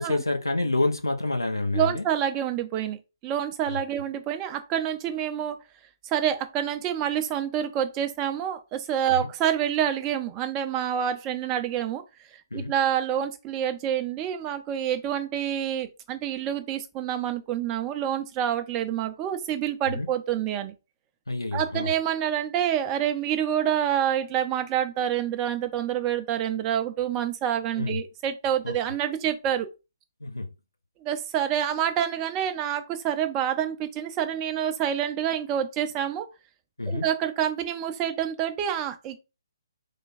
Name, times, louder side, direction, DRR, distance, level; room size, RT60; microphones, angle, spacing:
voice 1, 0.0-2.0 3.7-3.8 9.1-9.3 12.5-12.7 20.0-20.1 21.3-21.9 27.8-28.0 28.6-28.7 30.2-30.5 36.8-37.1, left 2 dB, 80° left, 0.7 m, -28 dB
voice 2, 1.7-5.6 6.1-12.0 12.5-20.7 21.5-29.7 31.0-36.3 36.9-39.2, right 10 dB, 20° right, 0.4 m, -27 dB
3.3 x 2.3 x 4.0 m
figure-of-eight pair, 135°, 2 cm